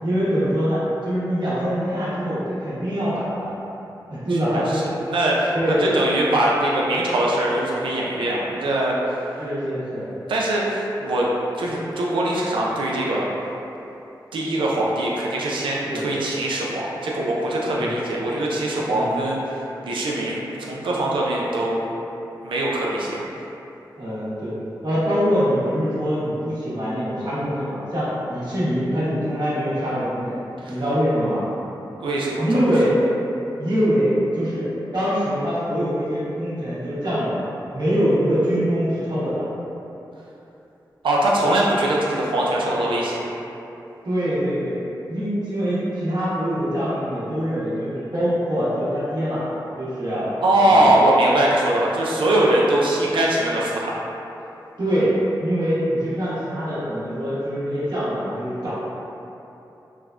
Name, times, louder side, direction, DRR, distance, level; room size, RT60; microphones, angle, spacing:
voice 1, 0.0-3.5 4.1-4.8 5.5-5.9 9.4-10.1 15.9-16.0 17.7-17.9 18.9-19.2 24.0-24.6 24.8-30.4 30.7-31.4 32.4-33.0 33.6-34.7 34.9-39.5 44.0-44.8 45.1-49.4 49.8-50.2 50.6-51.0 54.8-58.7, equal, 55° right, -11 dB, 0.9 m, -23 dB
voice 2, 4.3-4.8 5.1-5.5 5.8-9.2 10.3-11.3 11.5-13.3 14.3-21.8 22.4-23.2 30.6-30.8 32.0-32.4 41.0-43.2 50.4-53.9, right 1 dB, 85° right, -4 dB, 0.4 m, -22 dB
3.2 x 2.0 x 2.4 m, 2.9 s
cardioid pair, 50°, 8 cm